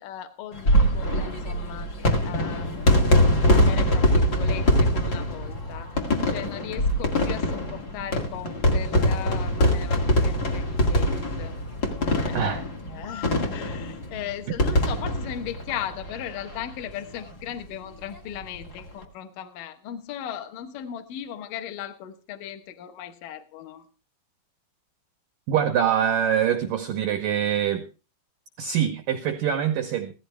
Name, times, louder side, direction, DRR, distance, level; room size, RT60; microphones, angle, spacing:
voice 1, 0.0-2.0 2.2-5.9 6.3-23.9, left 10 dB, 70° left, 2.2 m, -37 dB
sound 1, 0.5-16.5 16.9-17.0 17.1-17.2 18.5-18.8, left 1 dB, 45° left, 1.2 m, -23 dB
voice 2, 25.5-27.9 28.6-30.1, right 9 dB, 80° right, 2.0 m, -24 dB
16.0 x 14.0 x 3.3 m
omnidirectional pair, 5.3 m